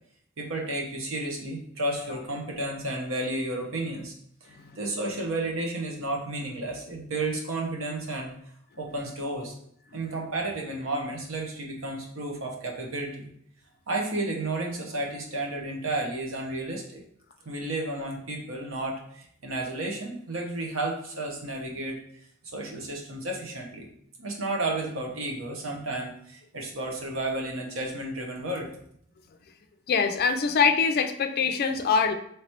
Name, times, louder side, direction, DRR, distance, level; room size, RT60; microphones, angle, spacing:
voice 1, 0.4-4.1 4.4-8.3 8.8-9.5 9.9-13.3 13.9-17.0 17.5-22.0 22.5-23.9 24.2-28.7, right 2 dB, 75° right, 0 dB, 0.9 m, -32 dB
voice 2, 29.9-32.1, left 5 dB, 50° left, 8 dB, 0.4 m, -23 dB
3.3 x 3.1 x 4.3 m, 0.68 s
head